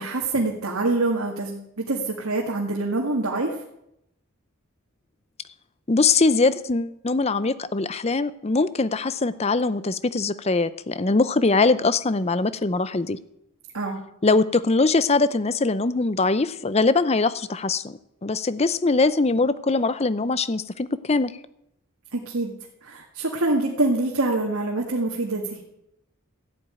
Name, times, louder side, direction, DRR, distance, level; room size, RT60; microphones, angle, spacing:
voice 1, 0.0-3.6 13.7-14.0 22.1-22.5 22.8-25.6, right 2 dB, 80° right, -1 dB, 2.0 m, -25 dB
voice 2, 5.9-13.2 14.2-21.3, left 3 dB, 30° left, 15 dB, 0.6 m, -22 dB
14.5 x 8.9 x 9.1 m, 0.81 s
head